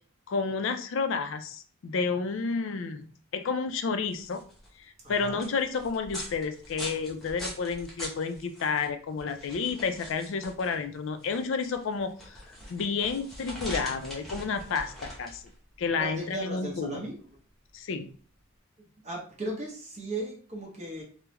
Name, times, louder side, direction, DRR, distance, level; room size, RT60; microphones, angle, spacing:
voice 1, 0.3-4.4 4.8-12.4 12.7-15.4 15.8-17.0 17.7-18.1, left 5 dB, 60° left, 9 dB, 0.4 m, -31 dB
sound 1, 4.0-18.5, equal, ahead, 0.8 m, -43 dB
voice 2, 5.0-5.5 16.0-17.1 19.0-21.0, right 1 dB, 30° right, -3 dB, 0.8 m, -36 dB
3.5 x 2.1 x 2.9 m, 0.43 s
head